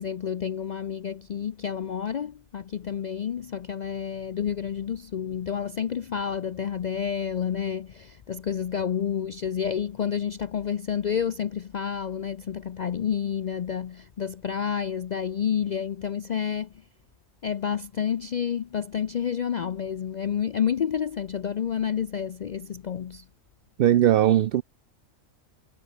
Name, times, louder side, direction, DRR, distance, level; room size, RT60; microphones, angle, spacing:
voice 1, 0.0-16.7 17.4-23.2, left 8 dB, 65° left, 0.4 m, -29 dB
voice 2, 23.8-24.6, right 11 dB, 60° right, 0.6 m, -19 dB
omnidirectional pair, 1.4 m